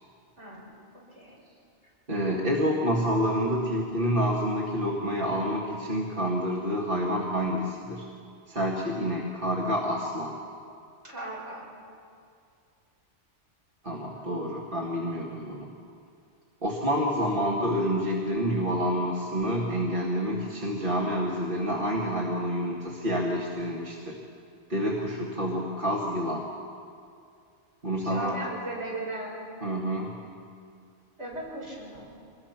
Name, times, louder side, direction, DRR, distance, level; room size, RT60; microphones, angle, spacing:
voice 1, 0.4-1.4 11.1-11.7 28.0-29.4 31.2-32.1, right 2 dB, 70° right, -4 dB, 6.5 m, -38 dB
voice 2, 2.1-8.0 8.5-10.4 13.8-15.7 16.6-24.2 24.7-26.5 27.8-28.4 29.6-30.2, equal, 45° right, -3 dB, 2.2 m, -28 dB
26.0 x 21.0 x 5.9 m, 2.4 s
omnidirectional pair, 1.2 m